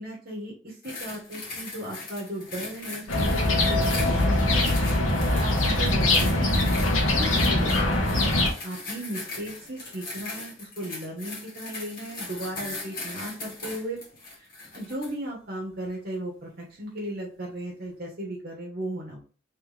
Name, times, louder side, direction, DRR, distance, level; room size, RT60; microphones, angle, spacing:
voice 1, 0.0-6.8 7.0-8.2 8.6-14.0 14.4-19.2, right 1 dB, 50° right, -1 dB, 1.2 m, -36 dB
sound 1, 0.8-15.2 15.8-16.0, left 3 dB, 45° left, 1.7 m, -39 dB
sound 2, 3.1-8.5, left 1 dB, 85° left, 1.1 m, -22 dB
3.4 x 3.1 x 3.3 m, 0.38 s
head